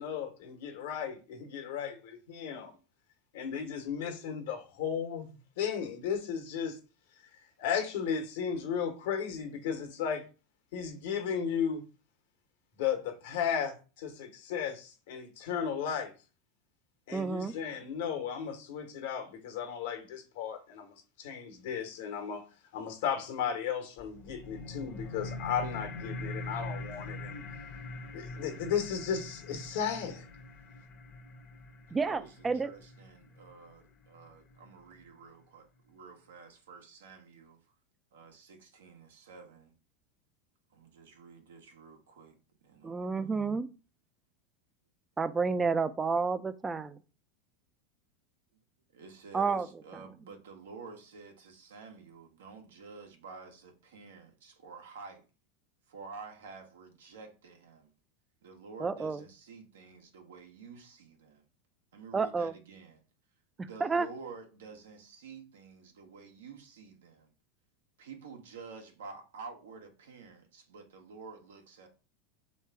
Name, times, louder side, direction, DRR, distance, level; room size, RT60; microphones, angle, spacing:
voice 1, 0.0-2.7 3.3-5.3 5.6-6.8 7.6-10.2 10.7-11.9 12.8-16.1 17.1-22.4 22.7-27.4 28.1-30.3, left 7 dB, 75° left, 1.2 m, -35 dB
voice 2, 17.1-17.5 31.9-32.7 42.8-43.7 45.2-47.0 49.3-49.7 58.8-59.2 62.1-62.5 63.6-64.1, right 4 dB, 20° right, 0.4 m, -30 dB
sound 1, 24.0-35.0, left 2 dB, 35° left, 0.8 m, -43 dB
voice 3, 31.9-37.6 38.1-39.7 40.7-42.4 42.6-43.5 48.9-55.2 55.9-57.9 58.4-61.4 61.9-63.0 63.6-67.3 68.0-71.9, right 5 dB, 90° right, 1.1 m, -50 dB
3.3 x 3.1 x 4.6 m
hypercardioid pair, 110°, 0 cm